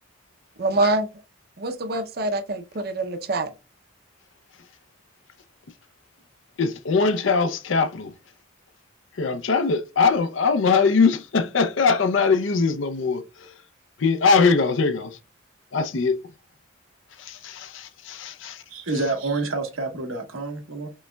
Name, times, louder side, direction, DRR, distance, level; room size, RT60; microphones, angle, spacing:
voice 1, 0.6-1.1 1.6-3.5, right 2 dB, 50° right, 0.6 m, -25 dB
voice 2, 6.6-8.1 9.2-13.5 14.0-15.2 15.7-16.2 17.2-18.6, left 4 dB, 70° left, 0.5 m, -21 dB
voice 3, 18.7-20.9, right 3 dB, 90° right, 1.1 m, -28 dB
5.3 x 3.3 x 2.2 m
head